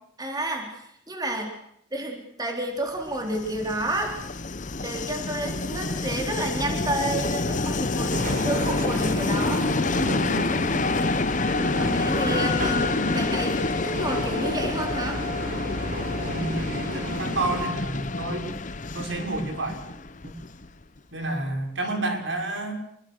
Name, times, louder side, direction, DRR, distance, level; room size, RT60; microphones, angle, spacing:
voice 1, 0.2-1.5 1.9-4.2 4.8-9.7 11.7-13.6 13.8-15.2, right 1 dB, 20° right, 2 dB, 4.2 m, -30 dB
Train, 3.1-20.8, left 3 dB, 40° left, 0.9 m, -27 dB
sound 1, 8.1-17.7, right 1 dB, 45° right, 5.5 m, -33 dB
voice 2, 16.3-18.5 18.9-19.8 20.2-20.4 21.1-22.7, right 2 dB, 75° right, 3 dB, 5.8 m, -30 dB
28.0 x 23.0 x 6.6 m, 0.73 s
head